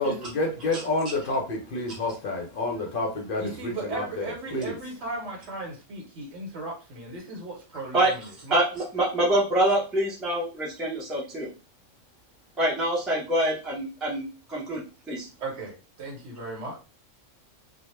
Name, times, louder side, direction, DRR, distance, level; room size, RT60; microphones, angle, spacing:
voice 1, 0.0-4.8, left 2 dB, 60° left, 0.6 m, -29 dB
voice 2, 3.4-8.2 8.4-8.6 15.4-16.8, right 3 dB, 65° right, 1.0 m, -36 dB
voice 3, 8.5-11.5 12.6-15.3, right 1 dB, ahead, 0.5 m, -25 dB
2.2 x 2.1 x 3.0 m
omnidirectional pair, 1.3 m